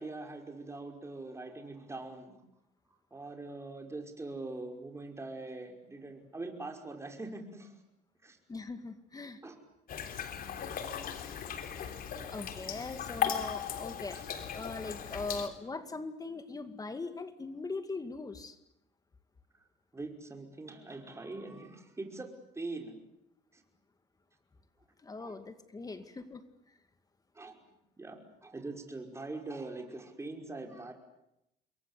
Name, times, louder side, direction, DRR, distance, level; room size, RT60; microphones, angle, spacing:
voice 1, 0.0-2.4 3.1-7.7 8.2-8.4 9.4-9.6 11.0-11.1 12.2-12.6 13.1-13.2 14.1-14.2 19.9-22.9 23.5-23.6 25.2-25.4 27.3-27.6 28.0-30.9, right 2 dB, 15° right, 3 dB, 5.5 m, -43 dB
voice 2, 8.5-9.4 12.3-18.6 25.0-26.4, left 3 dB, 20° left, 10 dB, 2.2 m, -41 dB
sound 1, 9.9-15.5, left 8 dB, 60° left, 3.5 m, -37 dB
28.5 x 22.5 x 8.4 m, 0.83 s
cardioid pair, 110°, 17 cm